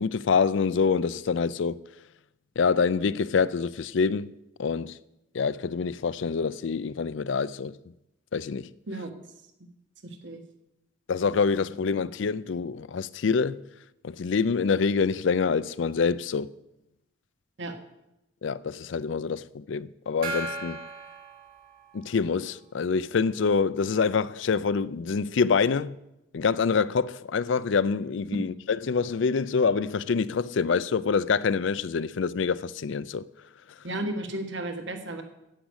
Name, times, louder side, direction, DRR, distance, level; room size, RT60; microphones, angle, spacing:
voice 1, 0.0-1.8 2.6-4.3 4.6-5.0 5.3-7.7 8.3-8.7 11.1-13.6 14.0-16.5 18.4-20.8 21.9-26.0 26.3-33.2, left 5 dB, 70° left, 0.4 m, -26 dB
voice 2, 8.9-9.2 10.0-10.4 17.6-17.7 33.8-35.2, right 1 dB, 65° right, 1.4 m, -34 dB
Gong, 20.2-22.3, right 2 dB, 45° right, 1.7 m, -36 dB
10.0 x 8.3 x 8.0 m
head